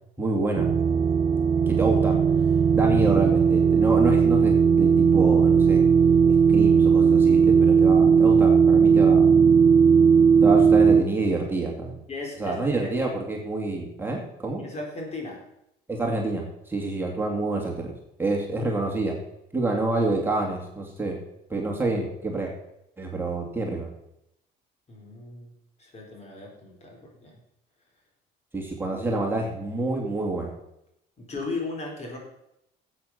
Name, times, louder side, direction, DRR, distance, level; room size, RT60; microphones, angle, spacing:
voice 1, 0.2-0.7 1.6-2.2 2.7-5.8 6.3-9.3 10.4-12.0 12.4-14.6 15.9-17.9 18.2-19.2 19.5-21.2 21.5-22.5 23.0-23.9 28.5-30.5, right 2 dB, 10° right, -1 dB, 2.6 m, -27 dB
sound 1, 0.6-11.0, right 6 dB, 30° right, 0.5 m, -18 dB
voice 2, 12.1-12.9 14.6-15.4 24.9-25.5 25.8-27.4 29.1-29.2 31.2-32.2, left 3 dB, 40° left, 0 dB, 4.0 m, -36 dB
12.5 x 8.2 x 5.9 m, 0.82 s
cardioid pair, 110°, 17 cm